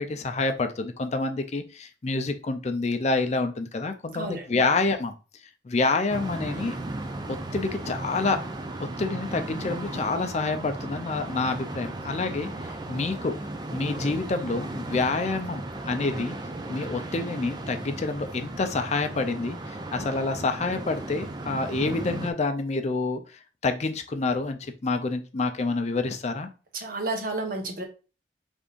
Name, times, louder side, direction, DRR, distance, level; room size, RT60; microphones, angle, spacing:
voice 1, 0.0-5.2 5.6-6.8 7.5-8.4 8.8-13.3 13.7-16.4 16.7-26.5, left 3 dB, 40° left, 7 dB, 0.5 m, -28 dB
voice 2, 4.1-4.6 26.7-27.8, right 2 dB, 50° right, 3 dB, 1.0 m, -31 dB
sound 1, 6.1-22.3, right 2 dB, 25° right, 0.5 m, -36 dB
5.3 x 3.5 x 2.5 m, 0.33 s
head